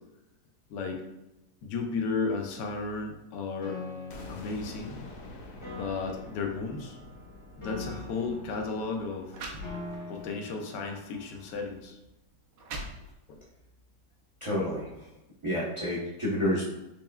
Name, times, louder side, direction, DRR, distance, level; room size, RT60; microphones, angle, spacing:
voice 1, 0.7-1.0 1.6-3.8 4.3-5.0 5.7-7.0 7.6-9.3 10.1-12.0 13.3-13.4, left 4 dB, 90° left, 3 dB, 1.3 m, -34 dB
Piano, 3.6-11.6, left 3 dB, 35° left, 0.4 m, -44 dB
sound 1, 4.1-9.9, left 1 dB, 65° left, 1.0 m, -48 dB
sound 2, 8.2-8.3 9.0-9.1 9.3-10.2 10.8-11.0 11.7-11.8 12.3-13.5, right 2 dB, 80° right, 1.3 m, -41 dB
voice 2, 14.4-15.1 15.4-16.6, equal, 45° right, -7 dB, 0.3 m, -29 dB
4.7 x 3.1 x 2.2 m, 0.95 s
omnidirectional pair, 1.8 m